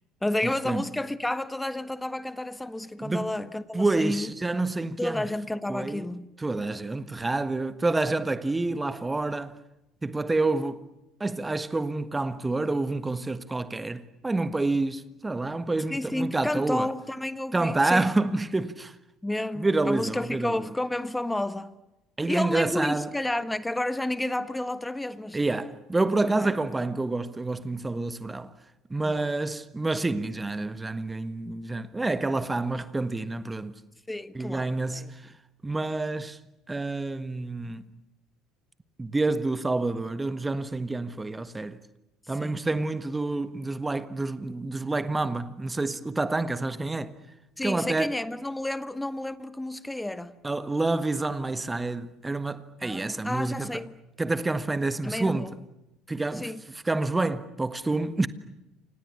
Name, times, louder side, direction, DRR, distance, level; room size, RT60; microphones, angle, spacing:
voice 1, 0.2-4.3 5.0-6.3 15.9-18.0 19.2-21.7 22.3-25.4 26.2-26.5 29.0-29.3 34.1-35.2 42.4-42.6 47.6-50.4 52.8-53.9 55.0-55.5 56.3-56.6, left 1 dB, 10° left, 1.5 m, -31 dB
voice 2, 3.0-3.3 3.7-5.2 5.7-6.1 6.4-9.6 10.0-10.8 11.2-16.9 17.5-18.9 19.6-20.7 22.2-23.1 25.3-28.5 28.9-33.8 34.3-35.1 35.6-36.4 36.7-37.9 39.0-41.8 42.3-47.1 47.6-48.1 50.4-53.8 54.2-55.5 56.1-56.5 56.8-58.3, right 2 dB, 15° right, 1.5 m, -28 dB
29.5 x 27.5 x 7.0 m
figure-of-eight pair, 60°, 0 cm